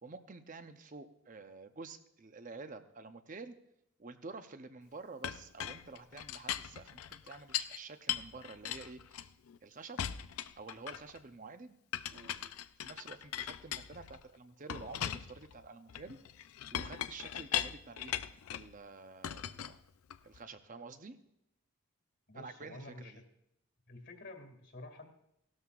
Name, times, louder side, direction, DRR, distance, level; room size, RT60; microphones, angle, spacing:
voice 1, 0.0-3.6 4.0-9.3 9.6-10.0 10.6-11.8 12.1-12.5 12.8-16.2 16.7-18.2 18.5-19.8 20.2-21.2 22.3-23.2, right 3 dB, 35° right, 9 dB, 0.7 m, -49 dB
Chink clink, 5.2-7.8 8.1-9.6 10.0-11.2 11.9-14.2 14.7-18.7 19.2-20.4, left 10 dB, 85° left, 0.5 m, -39 dB
voice 2, 22.3-23.2 23.9-25.0, left 2 dB, 55° left, 5 dB, 2.2 m, -49 dB
17.0 x 12.5 x 2.4 m, 0.80 s
head